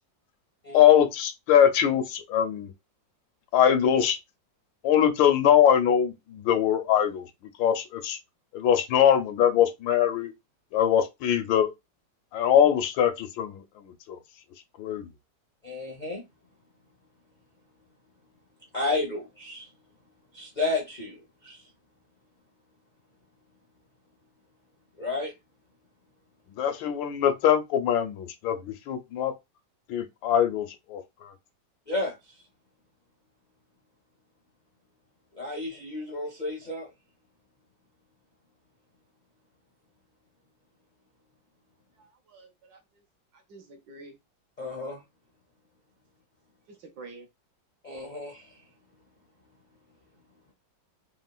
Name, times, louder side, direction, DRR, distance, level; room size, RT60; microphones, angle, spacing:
voice 1, 0.7-2.7 3.5-4.2 4.8-7.3 7.6-8.2 8.5-10.3 10.7-11.7 12.3-14.2 14.8-15.1 26.5-29.3 29.9-31.0, left 9 dB, 85° left, 1.3 m, -22 dB
voice 2, 15.6-16.2 18.7-19.7 20.3-21.6 25.0-25.3 31.9-32.2 35.3-36.9 44.6-45.0 47.8-48.6, left 2 dB, 55° left, 0.5 m, -32 dB
voice 3, 42.0-42.8 43.3-44.2 46.8-47.3, right 3 dB, 65° right, 1.1 m, -48 dB
3.7 x 2.0 x 2.3 m
omnidirectional pair, 2.0 m